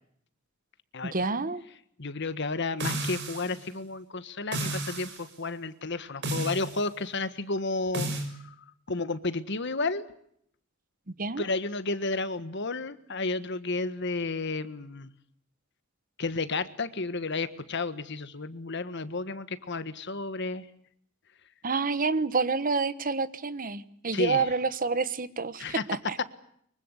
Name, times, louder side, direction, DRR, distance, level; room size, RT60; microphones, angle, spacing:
voice 1, 1.1-1.6 11.2-11.5 21.6-26.2, right 4 dB, 45° right, 14 dB, 1.1 m, -28 dB
voice 2, 2.0-8.1 8.4-8.5 8.9-10.1 11.4-15.1 16.2-20.6 24.1-24.5 25.6-25.8, left 3 dB, 60° left, 12 dB, 1.5 m, -32 dB
sound 1, 2.8-3.6 4.5-5.2 6.2-6.8 7.9-8.3, right 2 dB, 60° right, 6.1 m, -32 dB
24.5 x 23.5 x 8.2 m, 0.70 s
head